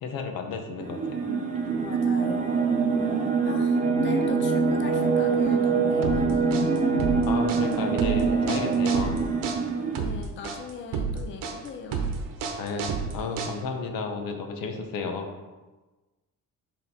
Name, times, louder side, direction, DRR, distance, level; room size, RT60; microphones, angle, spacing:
voice 1, 0.0-1.2 7.3-9.2 12.6-15.3, left 4 dB, 85° left, 4 dB, 1.0 m, -32 dB
sound 1, 0.8-10.0, right 4 dB, 25° right, 0.7 m, -24 dB
voice 2, 1.8-2.5 3.4-6.8 9.9-12.1, left 6 dB, 35° left, 5 dB, 0.5 m, -40 dB
sound 2, 6.0-13.9, right 5 dB, 75° right, 0.9 m, -30 dB
6.7 x 4.1 x 4.2 m, 1.2 s
cardioid pair, 155°, 33 cm